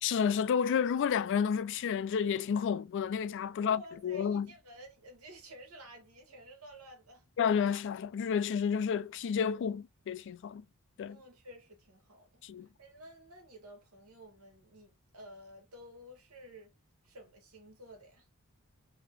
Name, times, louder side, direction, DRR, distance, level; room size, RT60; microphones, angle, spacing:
voice 1, 0.0-4.5 7.4-10.6 11.0-11.2 12.4-12.7, left 7 dB, 55° left, 0.3 m, -30 dB
voice 2, 3.6-7.3 11.0-12.4 12.8-16.7 17.0-18.3, right 1 dB, 85° right, 1.6 m, -52 dB
3.3 x 2.8 x 3.3 m
head